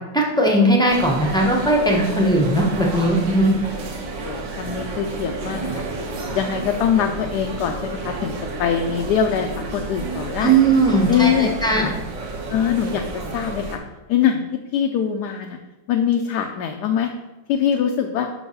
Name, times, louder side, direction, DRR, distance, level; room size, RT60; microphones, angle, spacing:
voice 1, 0.1-3.5 10.4-11.9, right 2 dB, 5° left, -1 dB, 0.5 m, -18 dB
sound 1, 0.9-13.8, right 3 dB, 75° right, 1.7 m, -31 dB
voice 2, 4.2-5.8 6.3-8.3 8.6-10.6 11.1-11.9 12.5-13.8 14.1-14.4 14.7-15.6 15.9-17.1 17.5-18.3, left 8 dB, 70° left, 4 dB, 1.0 m, -23 dB
5.8 x 4.6 x 5.4 m, 1.0 s
omnidirectional pair, 2.0 m